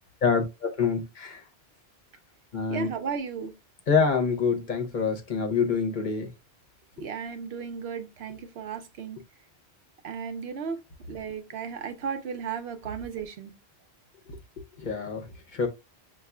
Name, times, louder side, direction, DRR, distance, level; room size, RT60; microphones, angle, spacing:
voice 1, 0.2-1.4 2.5-2.9 3.9-6.3 14.8-15.2 15.5-15.7, left 5 dB, 50° left, 0.8 m, -26 dB
voice 2, 2.7-3.5 7.0-9.2 10.0-10.8 11.1-13.5, right 6 dB, 75° right, 0.9 m, -35 dB
6.6 x 2.4 x 2.3 m
omnidirectional pair, 1.1 m